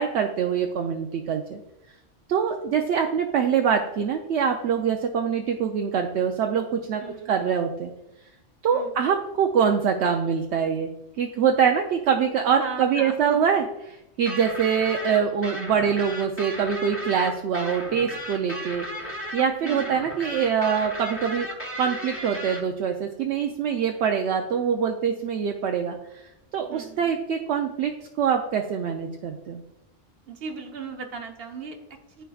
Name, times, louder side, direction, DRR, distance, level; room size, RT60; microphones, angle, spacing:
voice 1, 0.0-1.6 2.3-7.0 7.3-7.9 8.6-10.9 11.2-21.5 21.8-27.9 28.2-29.6, right 7 dB, 70° right, 3 dB, 0.9 m, -24 dB
voice 2, 7.0-7.3 8.7-9.1 12.5-13.4 19.6-20.0 26.5-27.1 30.3-32.2, right 5 dB, 55° right, 4 dB, 1.2 m, -37 dB
sound 1, 14.3-22.6, equal, 10° left, 1.1 m, -35 dB
12.5 x 4.7 x 2.3 m, 0.92 s
omnidirectional pair, 1.2 m